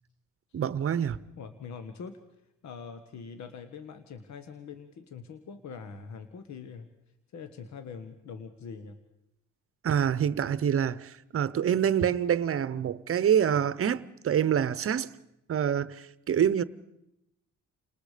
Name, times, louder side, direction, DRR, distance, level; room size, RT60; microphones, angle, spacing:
voice 1, 0.5-1.2 9.8-15.1 15.5-16.6, right 9 dB, 50° right, 0.9 m, -26 dB
voice 2, 1.4-2.2 2.6-6.9 7.3-9.0, left 5 dB, 65° left, 1.6 m, -43 dB
29.5 x 20.0 x 5.1 m
cardioid pair, 90°, 30 cm